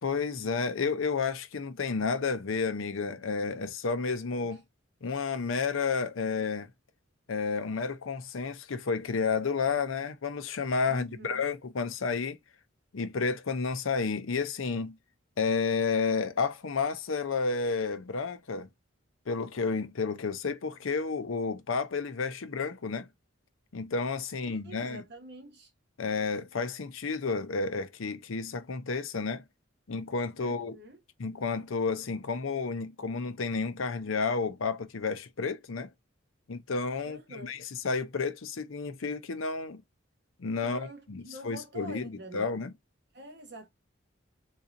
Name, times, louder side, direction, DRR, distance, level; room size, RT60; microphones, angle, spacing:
voice 1, 0.0-4.6 5.0-6.7 7.3-12.4 12.9-15.0 15.4-18.7 19.3-23.1 23.7-25.0 26.0-29.4 29.9-30.8 31.2-35.9 36.5-39.8 40.4-42.0 42.3-42.7, left 4 dB, 90° left, 0.6 m, -31 dB
voice 2, 10.9-11.5 24.4-25.7 30.4-31.0 37.0-37.6 40.6-42.5 43.1-43.7, equal, 55° right, 1.2 m, -46 dB
3.9 x 2.7 x 2.5 m
head